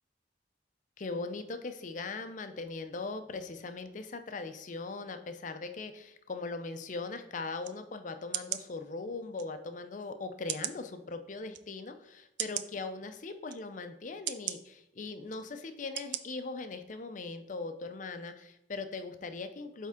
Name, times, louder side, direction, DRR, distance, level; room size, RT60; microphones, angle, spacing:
voice 1, 1.0-19.9, left 3 dB, 45° left, 8 dB, 0.5 m, -40 dB
sound 1, 7.6-7.8 8.3-8.6 9.4-9.5 10.5-10.8 11.5-11.6 12.4-12.7 13.5-13.6 14.3-14.6 15.3-15.4 16.0-16.2 16.6-16.7, right 13 dB, 80° right, 0.4 m, -36 dB
8.6 x 3.6 x 3.6 m, 0.84 s
head